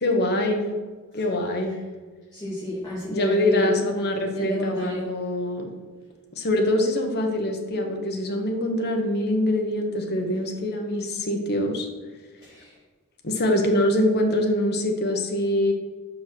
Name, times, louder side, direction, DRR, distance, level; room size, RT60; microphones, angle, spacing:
voice 1, 0.0-0.7 1.1-1.8 3.1-5.7 6.3-11.9 13.2-15.7, left 1 dB, 50° left, 3 dB, 1.1 m, -24 dB
voice 2, 2.3-3.7 4.3-5.1 7.6-7.7 12.4-12.8, left 1 dB, 20° left, -10 dB, 2.4 m, -30 dB
5.5 x 5.2 x 6.2 m, 1.4 s
head